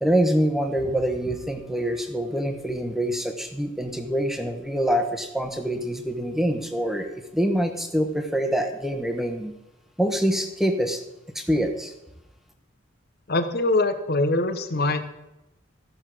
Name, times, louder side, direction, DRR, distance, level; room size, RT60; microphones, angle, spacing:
voice 1, 0.0-9.5 10.0-11.0 11.3-11.9, equal, ahead, 6 dB, 1.1 m, -25 dB
voice 2, 13.3-15.0, left 2 dB, 50° left, 9 dB, 1.0 m, -23 dB
14.5 x 6.6 x 6.2 m, 0.93 s
head